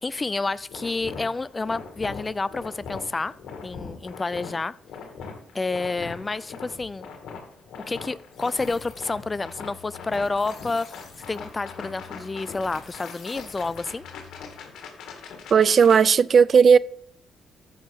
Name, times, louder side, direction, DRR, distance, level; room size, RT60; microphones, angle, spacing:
voice 1, 0.0-3.3 3.6-4.8 5.5-7.1 7.9-14.0, left 3 dB, 25° left, 0.3 m, -29 dB
sound 1, 0.7-16.0, left 5 dB, 75° left, 2.1 m, -41 dB
sound 2, 8.3-14.7, left 7 dB, 60° left, 4.4 m, -49 dB
voice 2, 15.5-16.8, right 6 dB, 50° right, 0.3 m, -15 dB
14.0 x 6.2 x 3.6 m
cardioid pair, 90°, 0 cm